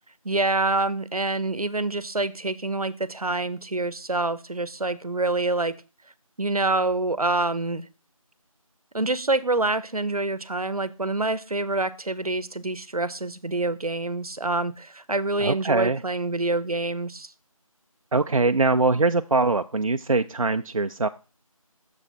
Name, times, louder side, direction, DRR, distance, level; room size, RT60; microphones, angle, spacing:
voice 1, 0.2-5.7 6.4-7.8 8.9-17.3, right 2 dB, 90° right, 16 dB, 0.8 m, -26 dB
voice 2, 15.4-16.0 18.1-21.1, right 3 dB, 65° right, 8 dB, 0.4 m, -22 dB
6.9 x 4.2 x 5.9 m, 0.33 s
figure-of-eight pair, 180°, 19 cm